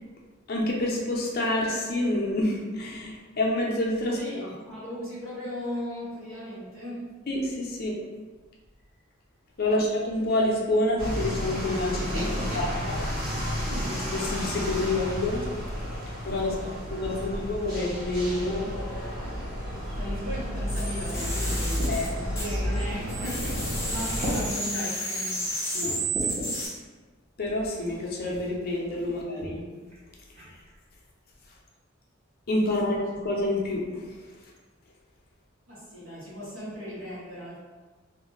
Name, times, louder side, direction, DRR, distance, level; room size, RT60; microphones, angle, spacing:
voice 1, 0.5-4.2 7.3-8.0 9.6-13.0 13.4-13.5 14.1-15.5 16.2-16.5 16.9-18.7 21.9-22.1 25.7-25.9 27.4-29.6 32.5-34.3, left 1 dB, 50° left, -2 dB, 0.5 m, -28 dB
voice 2, 4.1-7.2 9.6-9.8 12.1-12.8 13.7-14.1 16.3-16.8 17.1-17.2 19.2-19.5 19.9-26.2 29.1-29.2 32.7-33.0 35.7-37.6, equal, 80° right, -7 dB, 1.0 m, -37 dB
sound 1, 11.0-24.5, equal, 45° right, 1.0 m, -32 dB
sound 2, 20.7-22.8 23.1-26.7, right 1 dB, 15° left, 0.6 m, -32 dB
sound 3, 21.1-22.0 22.7-22.8 23.4-23.8 24.1-24.4 25.1-25.2 25.8-26.5 27.6-27.7 28.2-28.4 29.4-29.6 29.9-30.0 30.3-30.7, equal, 30° right, 0.7 m, -35 dB
2.4 x 2.1 x 3.0 m, 1.3 s
head